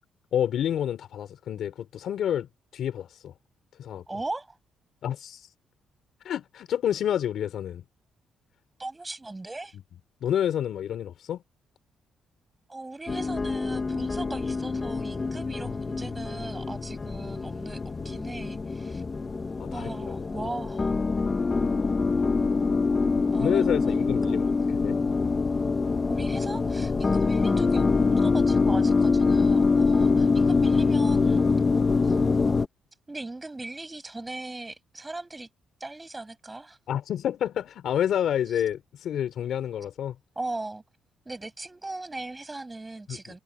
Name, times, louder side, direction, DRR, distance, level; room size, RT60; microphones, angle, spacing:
voice 1, 0.3-3.3 3.8-4.0 5.0-5.5 6.2-7.8 10.2-11.4 15.7-15.8 19.6-20.5 23.4-24.5 24.8-25.0 36.9-40.2 43.1-43.3, left 10 dB, 70° left, 3.9 m, -29 dB
voice 2, 4.1-4.6 8.8-9.8 12.7-19.0 19.7-20.9 23.3-24.4 26.1-31.5 32.0-32.2 33.1-35.5 35.8-36.8 40.4-40.8 41.3-43.4, right 2 dB, 15° right, 7.7 m, -38 dB
sound 1, 13.1-32.7, left 4 dB, 30° left, 1.2 m, -24 dB
cardioid pair, 90°, 0 cm